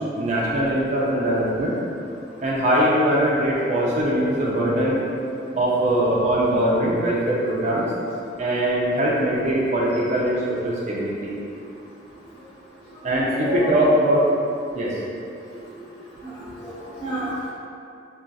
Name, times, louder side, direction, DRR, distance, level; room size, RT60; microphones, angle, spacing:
voice 1, 0.2-1.8 2.4-5.0 5.5-7.9 8.4-11.3 13.0-14.2 14.7-15.0, right 1 dB, 40° right, -5 dB, 0.4 m, -21 dB
voice 2, 13.4-13.7 16.2-16.3 16.6-17.5, equal, 30° left, -11 dB, 1.2 m, -29 dB
2.4 x 2.3 x 3.9 m, 2.5 s
head